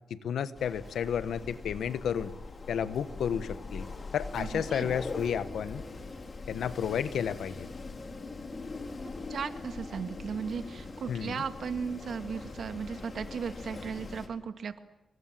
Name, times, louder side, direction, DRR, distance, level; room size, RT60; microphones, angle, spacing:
voice 1, 0.1-2.3 2.7-3.9 4.1-5.8 6.5-7.7 11.1-11.4, left 8 dB, 85° left, 12 dB, 1.4 m, -32 dB
Wind, 0.5-14.3, left 3 dB, 40° left, 4.2 m, -42 dB
voice 2, 4.4-5.0 9.0-14.8, right 6 dB, 65° right, 8 dB, 2.1 m, -36 dB
27.0 x 24.0 x 7.7 m, 1.1 s
cardioid pair, 85°, 0 cm